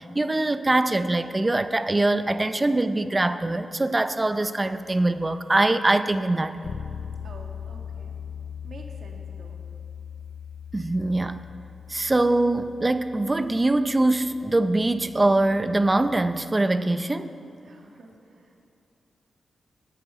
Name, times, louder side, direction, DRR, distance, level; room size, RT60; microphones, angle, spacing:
voice 1, 0.0-6.7 10.7-11.5 11.9-17.4, right 2 dB, 20° right, 11 dB, 0.5 m, -23 dB
Bass guitar, 6.6-16.4, left 7 dB, 85° left, 0.6 m, -40 dB
voice 2, 7.2-8.2 8.6-9.6 17.6-18.7, right 3 dB, 65° right, 1 dB, 1.9 m, -48 dB
14.5 x 9.9 x 5.7 m, 2.8 s
cardioid pair, 90°, 0 cm